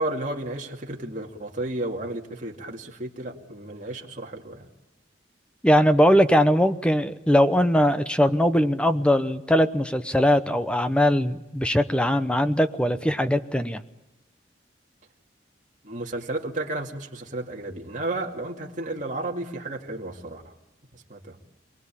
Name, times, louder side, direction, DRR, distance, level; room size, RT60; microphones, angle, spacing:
voice 1, 0.0-4.7 15.8-20.5 20.9-21.4, right 2 dB, 40° right, 0 dB, 2.5 m, -32 dB
voice 2, 5.6-13.8, equal, 5° left, 10 dB, 0.9 m, -20 dB
28.0 x 19.5 x 8.8 m, 0.99 s
head